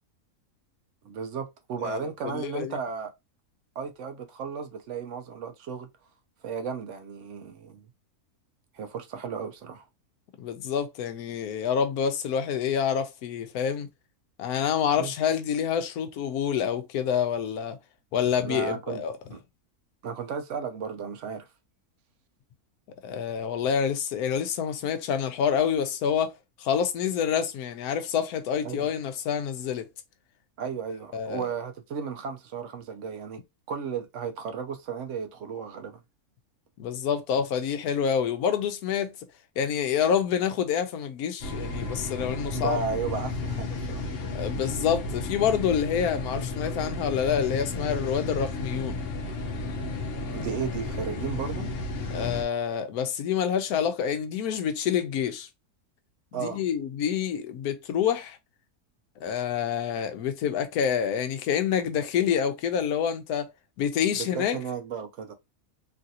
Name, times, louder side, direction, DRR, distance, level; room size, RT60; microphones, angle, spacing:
voice 1, 1.0-3.1 3.8-5.9 6.4-7.9 8.7-9.8 15.0-15.1 18.3-19.0 19.3-19.4 20.0-21.5 28.6-28.9 30.6-33.4 33.7-36.0 42.5-44.1 50.3-51.7 56.3-56.6 64.3-65.3, right 6 dB, 65° right, 0.8 m, -34 dB
voice 2, 1.8-2.8 10.4-13.9 14.4-17.8 18.1-19.2 23.0-26.3 26.6-29.9 31.1-31.4 36.8-39.2 39.6-42.8 44.3-49.0 52.1-55.5 56.4-58.4 59.2-63.5 63.8-64.6, left 8 dB, 80° left, 1.1 m, -27 dB
sound 1, 41.4-52.4, left 3 dB, 55° left, 0.7 m, -33 dB
3.2 x 2.4 x 2.7 m
omnidirectional pair, 1.6 m